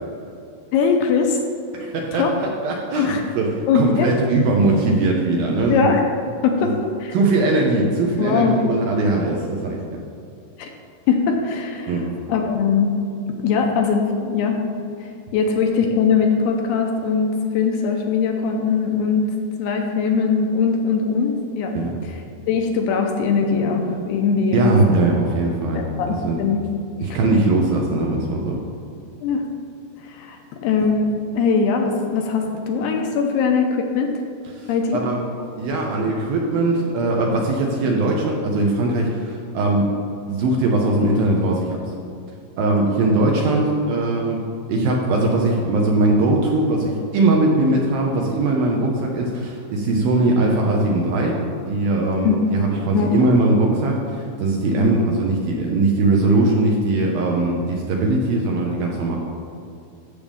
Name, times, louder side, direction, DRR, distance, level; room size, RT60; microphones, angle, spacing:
voice 1, 0.7-1.4 2.1-2.3 3.0-3.2 3.7-4.1 5.7-6.0 6.4-6.7 7.0-7.1 8.2-8.6 10.6-10.7 11.1-11.9 12.3-12.9 13.4-14.6 15.0-19.3 19.6-21.7 22.0-22.2 22.5-24.7 25.7-26.6 27.0-27.2 29.2-29.4 30.0-31.1 31.3-34.1 34.7-35.0 52.2-52.4 52.9-53.2 54.8-54.9, left 5 dB, 80° left, 2 dB, 2.6 m, -21 dB
voice 2, 1.7-5.9 6.6-6.7 7.1-10.0 11.9-12.1 21.7-21.9 24.5-26.4 27.0-28.6 34.5-35.2 35.6-39.9 40.3-41.9 42.6-44.4 44.7-51.4 51.7-59.2, right 2 dB, 75° right, -1 dB, 2.3 m, -20 dB
14.0 x 6.9 x 3.5 m, 2.5 s
omnidirectional pair, 5.0 m